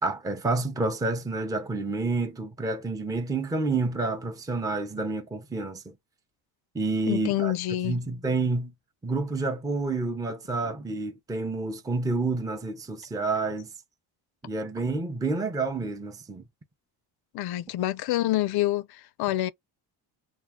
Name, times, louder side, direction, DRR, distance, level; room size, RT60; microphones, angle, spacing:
voice 1, 0.0-5.9 6.7-7.5 7.8-8.7 9.0-13.7 14.4-16.4, right 3 dB, 5° right, 0.6 m, -29 dB
voice 2, 7.1-8.0 17.3-19.5, left 14 dB, 55° left, 0.5 m, -27 dB
2.4 x 2.2 x 3.4 m
supercardioid pair, 75°, 49 cm